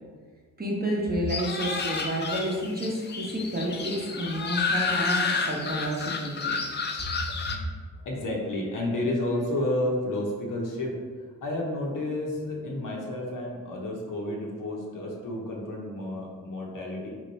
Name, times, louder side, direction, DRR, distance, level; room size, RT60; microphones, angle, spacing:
voice 1, 0.6-6.6, equal, 25° right, -3 dB, 0.8 m, -30 dB
sound 1, 1.3-7.6, left 4 dB, 30° left, 0.4 m, -30 dB
voice 2, 7.0-7.7 7.9-10.9 11.4-17.1, left 1 dB, 60° left, -1 dB, 0.9 m, -31 dB
3.0 x 2.1 x 4.1 m, 1.5 s
cardioid pair, 60°, 37 cm